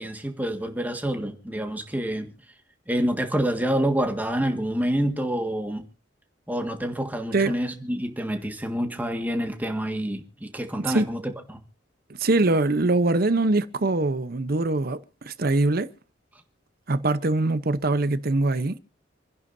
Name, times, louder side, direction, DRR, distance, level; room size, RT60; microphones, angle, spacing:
voice 1, 0.0-2.3 2.9-5.9 6.5-11.6, equal, 10° right, 1.7 m, -27 dB
voice 2, 12.2-15.0 15.3-15.9 16.9-18.8, right 2 dB, 55° right, 0.8 m, -23 dB
27.5 x 10.5 x 2.7 m
head